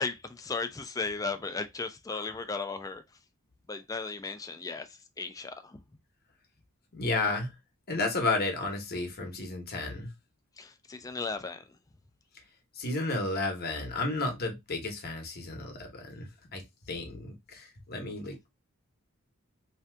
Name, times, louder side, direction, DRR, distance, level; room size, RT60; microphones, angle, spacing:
voice 1, 0.0-3.0 3.7-5.8 10.6-11.7, left 4 dB, 15° left, 0.4 m, -36 dB
voice 2, 6.9-7.5 7.9-10.1 12.8-16.6 16.9-18.5, left 2 dB, 45° left, 0.9 m, -32 dB
2.7 x 2.3 x 3.3 m
head